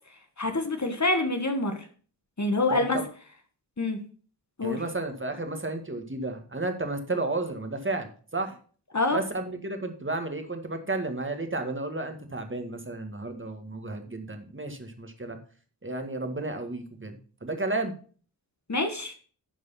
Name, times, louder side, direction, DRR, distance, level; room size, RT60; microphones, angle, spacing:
voice 1, 0.4-1.8 2.4-3.0 3.8-4.0 4.6-4.8 8.9-9.2 18.7-19.1, left 2 dB, 40° left, 6 dB, 1.5 m, -26 dB
voice 2, 2.7-3.0 4.6-8.6 9.1-15.4 15.8-17.9, right 2 dB, 25° right, 5 dB, 1.8 m, -32 dB
11.5 x 4.7 x 5.8 m, 0.42 s
wide cardioid pair, 60°, 44 cm